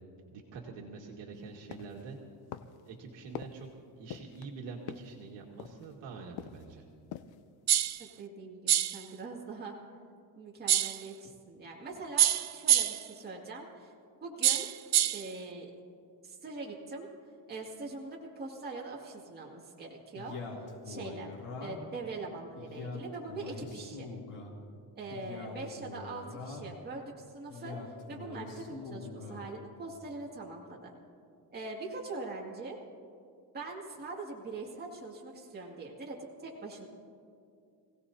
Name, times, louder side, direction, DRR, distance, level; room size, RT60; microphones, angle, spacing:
voice 1, 0.3-2.2 2.8-3.7 4.0-6.8, right 4 dB, 70° right, -1 dB, 2.0 m, -45 dB
sound 1, 1.7-2.1 2.5-2.9 3.3-3.7 4.1-4.5 4.9-5.2 5.6-6.0 6.4-6.7 7.0-7.4 7.8-7.9, left 10 dB, 55° left, 0.7 m, -44 dB
sound 2, 7.7-8.0 8.7-9.0 10.7-11.0 12.2-13.1 14.4-15.3, right 11 dB, 40° right, 0.5 m, -26 dB
voice 2, 8.0-9.8 10.4-13.9 14.2-14.7 15.1-15.7 16.2-17.1 17.5-20.4 20.8-21.3 21.6-24.1 25.0-30.9 31.5-32.8 33.5-36.9, right 3 dB, 20° right, -3 dB, 2.2 m, -42 dB
Male speech man speaking, 20.1-22.0 22.5-24.5 25.1-26.8 27.5-29.5, left 3 dB, 70° left, 3.0 m, -43 dB
26.5 x 17.0 x 2.8 m, 2.5 s
cardioid pair, 140°, 44 cm